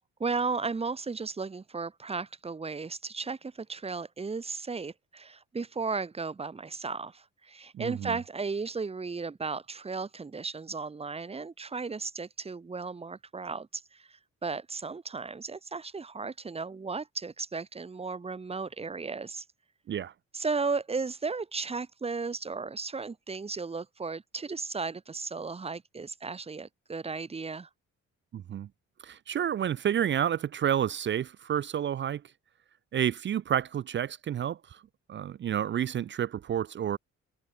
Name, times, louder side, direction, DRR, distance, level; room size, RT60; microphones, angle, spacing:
voice 1, 0.2-19.4 20.3-27.7, right 4 dB, 20° right, 0.9 m, -35 dB
voice 2, 7.7-8.2 19.9-20.1 28.3-28.7 29.0-32.2 32.9-34.8 35.1-37.0, right 9 dB, 40° right, 0.4 m, -30 dB
cardioid pair, 90°, 30 cm